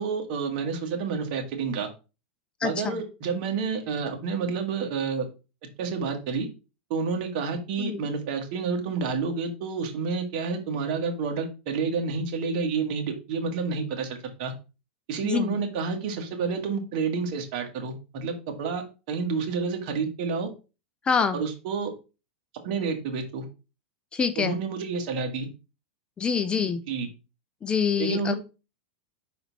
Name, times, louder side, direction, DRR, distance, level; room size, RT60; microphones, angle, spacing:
voice 1, 0.0-1.9 2.6-5.3 5.8-6.5 6.9-14.5 15.1-20.5 21.3-21.9 22.6-23.5 24.4-25.5 26.9-27.1 28.0-28.4, right 5 dB, 55° right, 4 dB, 1.7 m, -29 dB
voice 2, 2.6-3.0 7.8-8.0 15.2-15.5 21.1-21.4 24.1-24.6 26.2-26.8 27.6-28.3, left 6 dB, 15° left, 11 dB, 0.5 m, -25 dB
5.8 x 4.2 x 4.1 m, 0.31 s
supercardioid pair, 140°, 6 cm